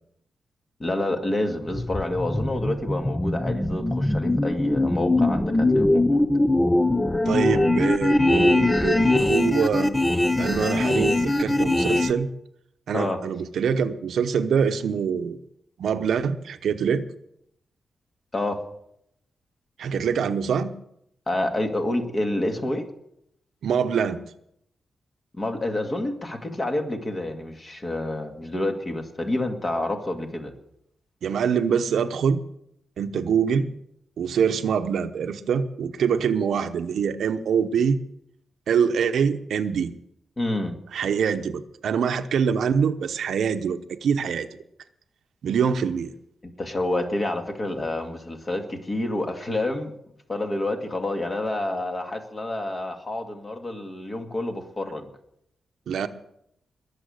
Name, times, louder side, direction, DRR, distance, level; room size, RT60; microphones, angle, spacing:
voice 1, 0.8-6.2 12.9-13.2 18.3-18.6 21.3-22.9 25.4-30.5 40.4-40.8 46.4-49.9 50.3-55.1, left 1 dB, 25° left, 4 dB, 2.0 m, -28 dB
sound 1, 1.7-12.1, left 2 dB, 10° left, 0.7 m, -22 dB
voice 2, 7.2-9.9 10.4-12.3 12.9-15.4 15.8-17.0 19.8-20.7 23.6-24.2 31.2-32.4 33.0-33.7 34.2-38.0 38.7-39.9 40.9-44.5 45.4-46.1 55.9-56.1, right 7 dB, 80° right, 9 dB, 0.9 m, -24 dB
21.5 x 7.2 x 6.6 m, 0.75 s
wide cardioid pair, 135°, 0 cm